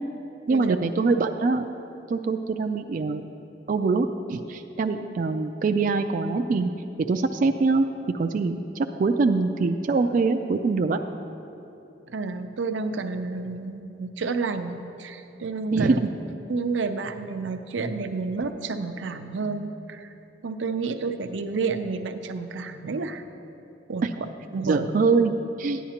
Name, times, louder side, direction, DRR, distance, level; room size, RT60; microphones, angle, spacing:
voice 1, 0.5-1.7 2.1-3.2 3.7-6.7 7.1-11.0 15.7-16.1 24.0-24.1 24.6-25.3 25.6-25.8, right 4 dB, 45° right, 6 dB, 0.3 m, -23 dB
voice 2, 12.1-16.0 16.5-20.1 20.4-23.2 23.9-24.1 24.5-24.9, right 4 dB, 90° right, 8 dB, 0.6 m, -30 dB
13.5 x 10.0 x 2.9 m, 2.9 s
head